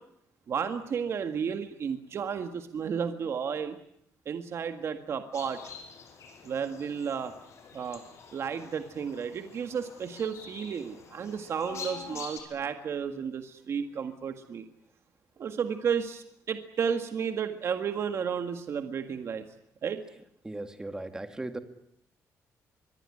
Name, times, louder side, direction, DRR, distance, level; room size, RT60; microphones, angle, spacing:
voice 1, 0.5-3.8 4.3-5.6 6.4-7.3 7.7-8.0 8.3-14.7 15.4-19.4 19.8-20.0, right 7 dB, 50° right, 7 dB, 1.8 m, -32 dB
sound 1, 5.3-12.4, left 5 dB, 55° left, 6.2 m, -46 dB
voice 2, 20.4-21.6, right 2 dB, 10° right, 8 dB, 2.1 m, -37 dB
24.5 x 22.5 x 9.8 m, 0.75 s
cardioid pair, 150°, 6 cm